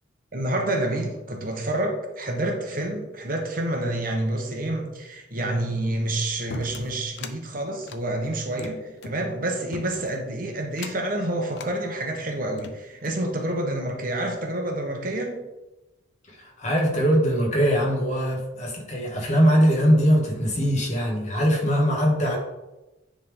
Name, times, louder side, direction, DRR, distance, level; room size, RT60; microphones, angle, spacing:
voice 1, 0.3-15.4, right 1 dB, 45° right, 2 dB, 1.0 m, -28 dB
sound 1, 6.5-7.4 7.8-9.2 9.7-10.2 10.7-11.1 11.5-11.8 12.3-13.3, left 3 dB, 60° left, 0.5 m, -40 dB
voice 2, 16.3-22.4, equal, 35° left, -2 dB, 1.6 m, -21 dB
9.6 x 3.7 x 3.6 m, 1.0 s
head